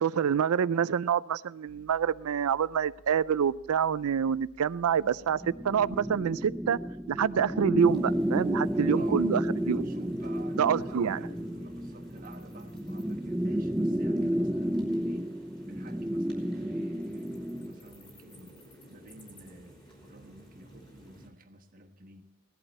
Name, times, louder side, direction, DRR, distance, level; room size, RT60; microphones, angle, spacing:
voice 1, 0.0-6.8 7.1-9.8 10.6-11.2, right 7 dB, 85° right, 0.4 m, -27 dB
sound 1, 1.7-8.5, equal, 65° left, 1.6 m, -58 dB
sound 2, 5.4-17.8, equal, 5° right, 0.4 m, -31 dB
sound 3, 7.8-21.3, equal, 25° left, 3.9 m, -53 dB
voice 2, 8.7-9.3 9.7-15.3 15.6-18.6 18.9-22.3, right 1 dB, 40° right, 1.4 m, -50 dB
18.0 x 12.0 x 4.3 m
head